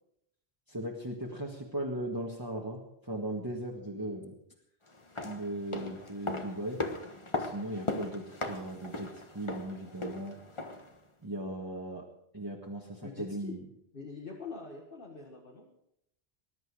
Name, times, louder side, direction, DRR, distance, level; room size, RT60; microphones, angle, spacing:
voice 1, 0.7-4.4 5.2-6.9 7.4-10.4 11.2-12.1 12.3-13.6, right 1 dB, 20° right, -2 dB, 1.6 m, -38 dB
sound 1, 4.9-11.0 11.2-11.3, left 2 dB, 30° left, 1.4 m, -38 dB
voice 2, 13.0-13.6 13.9-15.7, left 4 dB, 60° left, -1 dB, 2.0 m, -44 dB
20.5 x 11.0 x 4.9 m, 0.76 s
omnidirectional pair, 1.1 m